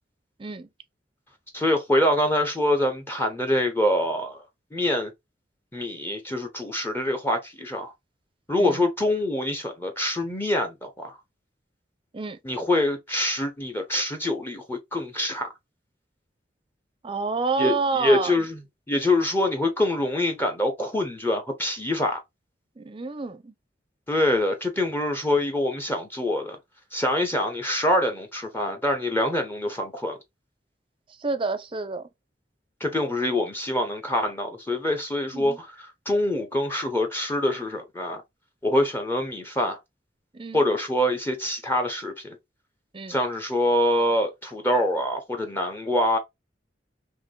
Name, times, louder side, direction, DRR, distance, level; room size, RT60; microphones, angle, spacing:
voice 1, 0.4-0.7 8.6-8.8 12.1-12.4 17.0-18.4 22.8-23.5 31.2-32.1 35.3-35.6 40.3-40.6 42.9-43.2, right 4 dB, 30° right, 0.6 m, -29 dB
voice 2, 1.5-4.4 4.7-5.1 5.7-7.9 8.5-11.1 12.4-15.5 17.6-17.7 18.0-18.6 18.9-22.2 24.1-26.6 26.9-30.2 32.8-38.2 38.6-39.8 40.5-42.4 43.1-46.2, left 1 dB, 15° left, 0.7 m, -25 dB
3.7 x 3.0 x 3.7 m
head